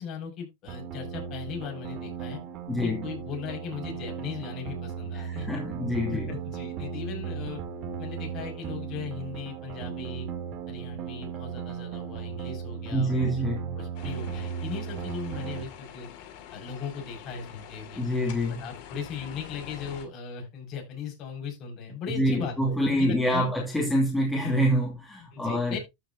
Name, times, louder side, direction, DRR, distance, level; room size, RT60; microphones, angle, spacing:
voice 1, 0.0-2.4 2.8-5.5 6.1-7.6 8.0-10.3 10.7-13.1 13.4-13.5 13.8-16.1 16.5-18.0 18.6-23.5 25.3-25.8, left 6 dB, 45° left, 5.9 m, -38 dB
sound 1, 0.7-15.6, right 7 dB, 45° right, 2.2 m, -36 dB
voice 2, 2.7-3.1 5.1-6.3 12.9-13.7 18.0-18.6 22.1-25.8, equal, 10° left, 2.7 m, -26 dB
sound 2, 13.9-20.1, left 9 dB, 60° left, 2.4 m, -45 dB
13.5 x 6.6 x 2.8 m
supercardioid pair, 125°, 0 cm